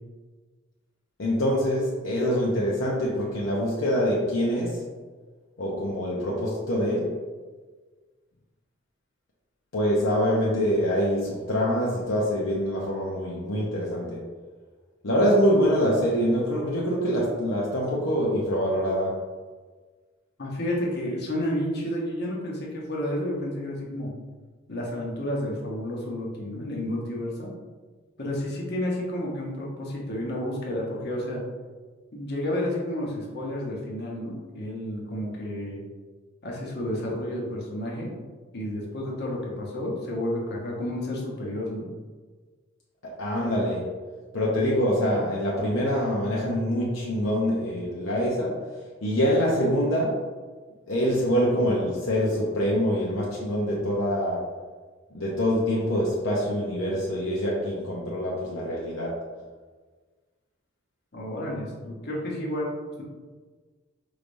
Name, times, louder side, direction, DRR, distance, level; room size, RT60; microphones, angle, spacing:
voice 1, 1.2-4.8 5.6-7.2 9.7-14.2 15.0-19.2 43.0-43.9 44.3-48.6 49.0-50.2 50.9-54.5 55.1-59.2, equal, 75° left, -4 dB, 0.7 m, -25 dB
voice 2, 20.4-24.1 24.7-27.5 28.2-31.4 32.1-35.8 36.4-38.1 38.5-41.9 61.1-62.7, left 1 dB, 55° left, -3 dB, 1.0 m, -31 dB
4.8 x 3.3 x 2.6 m, 1.4 s
head